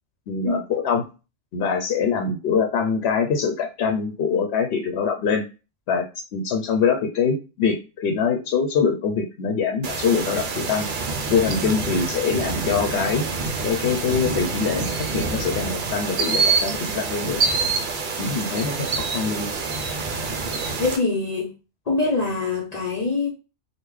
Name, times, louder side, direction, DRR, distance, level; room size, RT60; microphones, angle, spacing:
voice 1, 0.3-1.0 1.5-5.4 5.9-6.1 6.3-10.9 11.3-13.2 13.6-17.4 18.2-19.5, left 5 dB, 75° left, 0.8 m, -24 dB
sound 1, 9.8-21.0, right 4 dB, 55° right, 0.7 m, -26 dB
voice 2, 20.8-21.5 21.9-23.3, left 3 dB, 45° left, 0.7 m, -24 dB
3.1 x 2.2 x 3.6 m
omnidirectional pair, 1.1 m